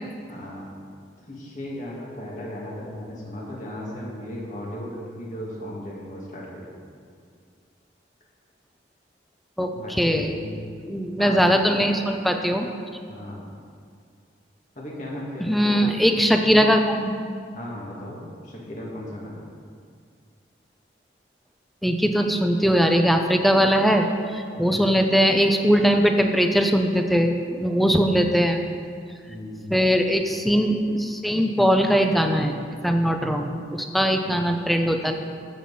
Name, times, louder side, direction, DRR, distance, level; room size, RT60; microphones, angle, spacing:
voice 1, 0.3-0.7 1.3-6.7 9.7-10.6 11.2-11.4 13.1-13.5 14.8-16.0 17.5-19.4 24.5-24.8 29.3-29.7 34.2-34.5, left 1 dB, 45° left, -4 dB, 2.4 m, -36 dB
voice 2, 10.0-10.3 10.8-12.7 15.4-17.2 21.8-24.0 24.3-28.6 29.7-35.1, equal, ahead, 4 dB, 0.6 m, -20 dB
13.5 x 7.6 x 4.3 m, 2.2 s
head